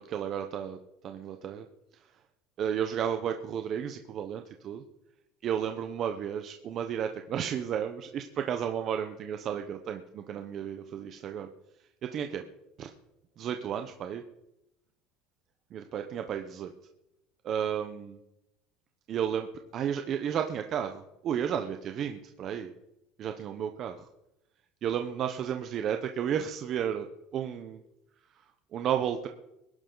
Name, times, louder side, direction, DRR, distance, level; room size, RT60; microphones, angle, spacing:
voice 1, 0.1-0.8 1.0-1.6 2.6-4.8 5.4-11.5 12.0-12.4 12.8-12.9 13.4-14.2 15.7-16.7 17.4-18.2 19.1-19.5 19.7-22.7 23.2-24.1 24.8-27.1 27.3-27.8 28.7-29.3, right 8 dB, 40° right, 6 dB, 1.0 m, -32 dB
21.0 x 11.0 x 4.0 m, 0.88 s
cardioid pair, 140°, 0 cm